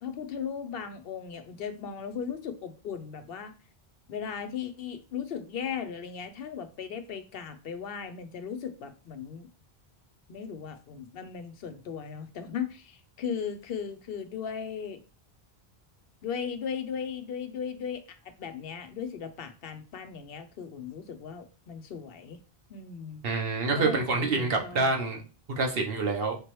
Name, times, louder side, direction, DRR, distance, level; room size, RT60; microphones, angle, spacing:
voice 1, 0.0-3.5 4.1-9.5 10.3-15.0 16.2-22.4 22.7-23.2 23.8-24.9, left 7 dB, 70° left, 8 dB, 0.8 m, -37 dB
voice 2, 23.2-25.2 25.6-26.4, right 3 dB, 65° right, 3 dB, 1.0 m, -27 dB
5.0 x 3.0 x 3.0 m, 0.35 s
omnidirectional pair, 1.1 m